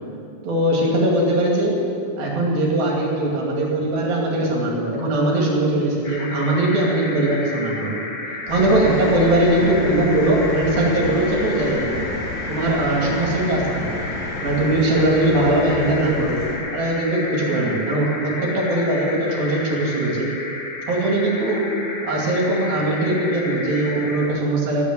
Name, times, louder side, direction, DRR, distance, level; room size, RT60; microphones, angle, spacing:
voice 1, 0.4-1.8 2.2-8.0 8.5-12.1 12.5-14.1 14.4-16.4 16.7-20.3 20.9-21.6 22.0-24.8, right 1 dB, 70° right, -2 dB, 4.2 m, -20 dB
sound 1, 6.0-24.3, left 2 dB, 85° left, 0.7 m, -32 dB
sound 2, 8.5-16.6, left 2 dB, 50° left, 3.5 m, -31 dB
14.0 x 8.6 x 8.1 m, 2.6 s
omnidirectional pair, 4.3 m